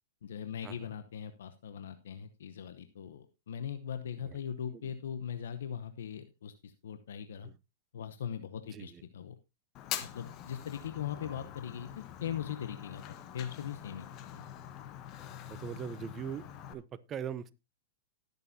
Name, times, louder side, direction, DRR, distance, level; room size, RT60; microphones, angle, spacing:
voice 1, 0.2-7.5 7.9-9.3 10.0-13.0 13.3-14.5, left 8 dB, 80° left, 9 dB, 0.9 m, -40 dB
voice 2, 8.7-9.0 11.2-11.4 15.5-16.4 16.7-17.5, right 8 dB, 25° right, 16 dB, 0.7 m, -41 dB
Fire, 9.7-16.7, left 11 dB, 40° left, 1.3 m, -44 dB
19.5 x 6.8 x 2.7 m, 0.24 s
hypercardioid pair, 125°, 0 cm